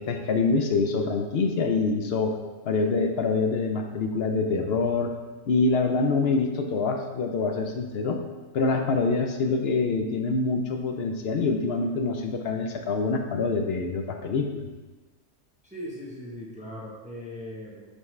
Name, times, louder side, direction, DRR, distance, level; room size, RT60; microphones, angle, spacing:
voice 1, 0.0-2.4 2.6-5.1 5.5-8.2 8.5-14.7, left 4 dB, 60° left, 4 dB, 0.8 m, -25 dB
voice 2, 15.7-17.8, left 1 dB, 5° right, -5 dB, 1.1 m, -39 dB
7.1 x 4.6 x 3.2 m, 1.2 s
omnidirectional pair, 1.3 m